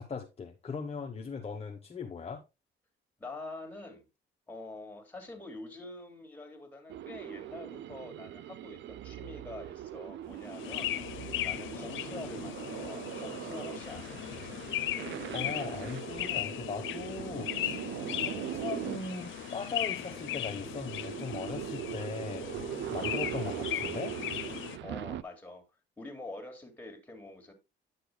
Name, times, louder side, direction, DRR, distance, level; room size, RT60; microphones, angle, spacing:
voice 1, 0.0-2.4 15.3-17.8 18.2-22.6 22.9-24.2, left 5 dB, 30° left, 1.0 m, -39 dB
voice 2, 3.2-4.0 4.5-10.9 11.4-14.2 24.8-25.6 26.0-27.5, left 2 dB, 10° left, 2.6 m, -45 dB
sound 1, 6.9-25.2, right 12 dB, 65° right, 0.4 m, -41 dB
sound 2, 10.5-24.8, left 13 dB, 80° left, 0.7 m, -38 dB
10.5 x 6.7 x 2.2 m
cardioid pair, 90°, 20 cm